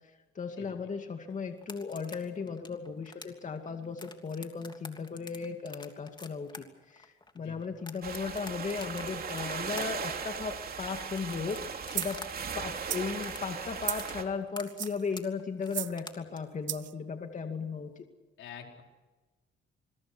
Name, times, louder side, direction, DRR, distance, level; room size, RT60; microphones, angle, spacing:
voice 1, 0.4-11.6 11.9-12.2 12.5-17.9, left 5 dB, 40° left, 5 dB, 2.3 m, -36 dB
sound 1, 1.6-12.3 12.5-16.4, left 3 dB, 20° left, 3.0 m, -47 dB
voice 2, 7.3-7.7 18.4-18.8, left 7 dB, 80° left, 2 dB, 4.5 m, -47 dB
sound 2, 8.0-14.2, right 6 dB, 50° right, 3.0 m, -38 dB
sound 3, 11.9-12.2 12.7-13.1 13.8-14.2 14.6-15.1 15.7-16.0 16.7-16.9, right 12 dB, 70° right, 0.9 m, -35 dB
26.5 x 22.0 x 6.2 m, 1.2 s
cardioid pair, 90°, 20 cm